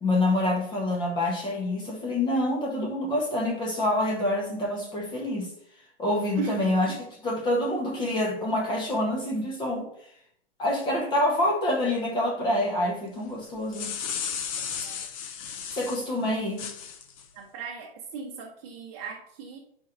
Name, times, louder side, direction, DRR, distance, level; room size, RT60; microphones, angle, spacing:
voice 1, 0.0-5.5 6.0-9.9 10.6-13.9 15.7-16.7, left 1 dB, 15° left, 0 dB, 0.9 m, -27 dB
sound 1, 13.5-16.0 16.6-17.2, left 7 dB, 35° left, 0.5 m, -34 dB
voice 2, 17.3-19.6, right 4 dB, 35° right, -1 dB, 0.9 m, -37 dB
9.0 x 4.5 x 2.5 m, 0.70 s
hypercardioid pair, 155°, 30 cm